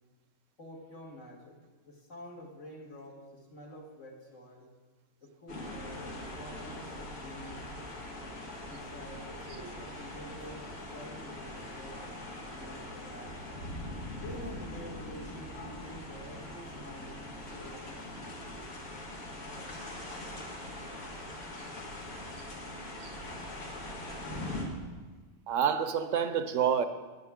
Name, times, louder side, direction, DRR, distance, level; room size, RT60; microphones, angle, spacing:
voice 1, 0.6-1.6 1.9-4.7 5.2-7.6 8.6-13.3 14.1-17.2 17.5-18.3, left 1 dB, 60° left, -1 dB, 2.2 m, -48 dB
sound 1, 5.5-24.6, left 1 dB, 85° left, 2.1 m, -42 dB
voice 2, 25.5-26.8, right 8 dB, 70° right, 10 dB, 0.9 m, -28 dB
14.0 x 9.6 x 3.6 m, 1.3 s
omnidirectional pair, 1.5 m